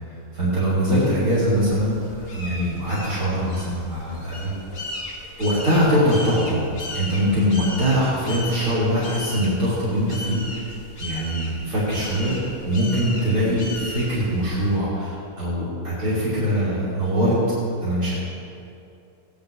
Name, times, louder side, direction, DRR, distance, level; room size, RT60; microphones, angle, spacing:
voice 1, 0.1-4.5 5.4-6.7 6.9-10.7 11.0-12.4 12.6-17.4 17.8-18.1, equal, 70° right, -10 dB, 4.5 m, -22 dB
sound 1, 0.8-14.8, left 1 dB, 30° left, 1.4 m, -36 dB
18.0 x 10.0 x 3.5 m, 2.6 s
omnidirectional pair, 2.4 m